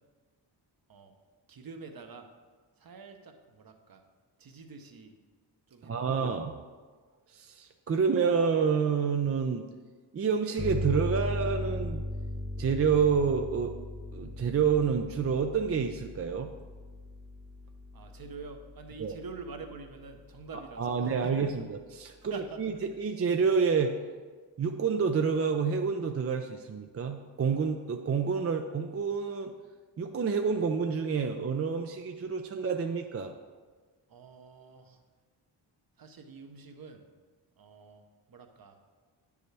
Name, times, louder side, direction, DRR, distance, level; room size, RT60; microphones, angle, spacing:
voice 1, 1.5-2.3 2.8-4.0 4.4-5.2 5.7-6.3 17.9-21.4 22.3-22.6 34.1-35.0 36.0-37.0 37.6-38.8, right 4 dB, 50° right, 5 dB, 0.9 m, -46 dB
voice 2, 5.8-6.6 7.3-9.7 10.1-12.0 12.6-13.7 14.1-16.5 19.0-19.1 20.8-23.9 24.6-29.5 30.0-33.3, right 6 dB, 35° right, 5 dB, 0.4 m, -28 dB
sound 1, 10.6-19.9, left 1 dB, 5° left, 0.7 m, -38 dB
9.1 x 7.0 x 3.3 m, 1.4 s
cardioid pair, 85°, 45 cm